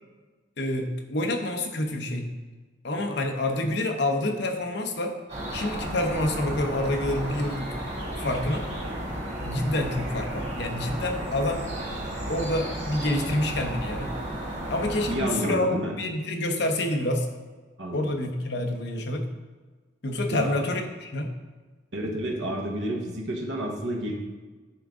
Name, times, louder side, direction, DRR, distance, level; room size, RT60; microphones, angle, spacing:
voice 1, 0.6-2.3 2.8-5.1 5.5-7.7 8.2-8.6 9.4-11.6 12.3-14.1 14.7-15.7 16.0-17.3 17.9-19.3 20.0-21.3, left 1 dB, 65° left, 4 dB, 0.9 m, -27 dB
sound 1, 5.3-15.2, right 1 dB, 40° right, 1.6 m, -33 dB
voice 2, 15.1-15.9 17.8-18.1 20.3-20.7 21.9-24.1, right 1 dB, 75° right, 0 dB, 1.1 m, -30 dB
9.6 x 3.7 x 3.7 m, 1.3 s
head